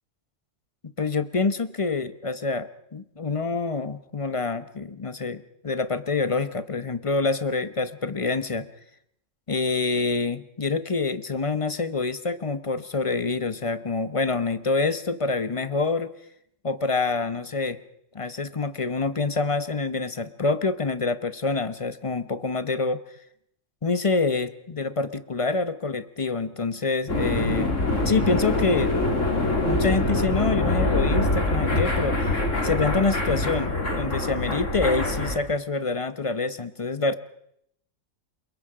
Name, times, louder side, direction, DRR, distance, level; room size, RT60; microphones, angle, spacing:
voice 1, 1.0-8.7 9.5-16.1 16.6-17.8 18.1-23.0 23.8-27.7 28.0-28.9 29.6-32.3 32.6-37.2, left 3 dB, 30° left, 12 dB, 0.9 m, -26 dB
sound 1, 27.1-35.4, left 2 dB, 80° left, 4.0 m, -24 dB
28.5 x 22.5 x 5.0 m, 0.75 s
omnidirectional pair, 1.3 m